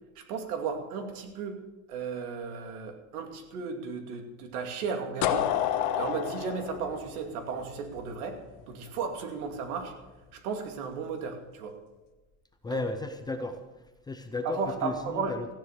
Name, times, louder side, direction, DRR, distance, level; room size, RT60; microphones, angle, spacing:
voice 1, 0.2-1.6 1.9-5.5 6.0-8.4 8.7-9.9 10.3-11.8 12.7-12.8 14.4-15.4, right 5 dB, 80° right, 5 dB, 2.6 m, -34 dB
sound 1, 5.2-8.1, left 11 dB, 45° left, 1.4 m, -29 dB
voice 2, 12.6-13.6 14.1-15.5, left 2 dB, 10° left, 6 dB, 0.5 m, -34 dB
15.0 x 10.0 x 6.6 m, 1.2 s
supercardioid pair, 155°, 44 cm